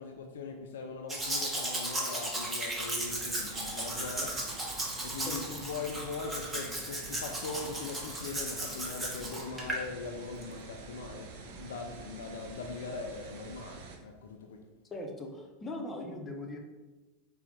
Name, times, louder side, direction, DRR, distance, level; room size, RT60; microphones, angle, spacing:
voice 1, 0.0-4.5 5.0-14.6, left 4 dB, 65° left, 4 dB, 0.3 m, -41 dB
Domestic sounds home sounds, 1.1-9.8 10.4-10.5, right 1 dB, 15° right, 0.8 m, -36 dB
sound 1, 3.0-14.0, right 4 dB, 55° right, 0.5 m, -47 dB
voice 2, 5.3-5.6 14.9-16.6, left 2 dB, 20° left, 2 dB, 0.6 m, -40 dB
4.2 x 2.0 x 4.0 m, 1.2 s
figure-of-eight pair, 85°, 0 cm